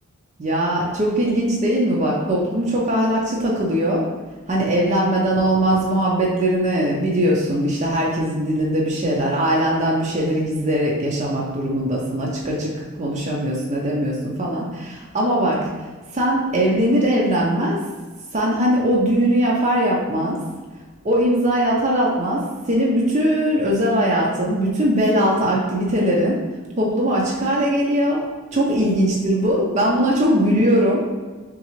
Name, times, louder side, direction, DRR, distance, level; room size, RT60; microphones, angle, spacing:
voice 1, 0.4-4.1 4.5-12.7 13.0-15.7 16.1-17.8 18.3-20.4 21.0-26.4 26.8-28.2 28.5-31.0, equal, 30° right, -3 dB, 0.5 m, -20 dB
3.7 x 3.2 x 3.1 m, 1.4 s
head